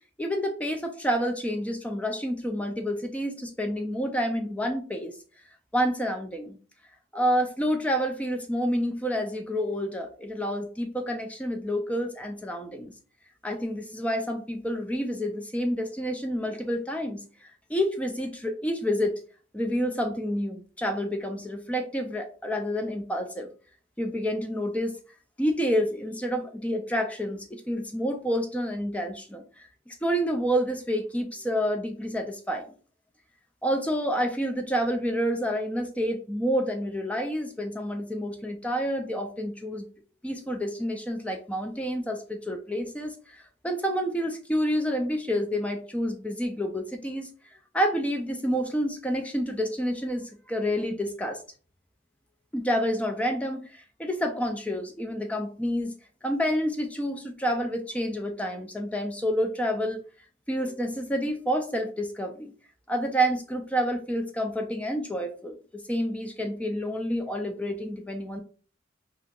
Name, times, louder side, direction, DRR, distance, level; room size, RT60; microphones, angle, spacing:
voice 1, 0.2-5.1 5.7-6.6 7.1-12.9 13.4-19.2 19.5-23.5 24.0-25.0 25.4-32.7 33.6-39.9 40.2-47.3 47.7-51.4 52.5-55.9 56.2-60.0 60.5-62.5 62.9-68.4, equal, 5° left, 4 dB, 0.3 m, -29 dB
2.8 x 2.4 x 3.5 m, 0.39 s
head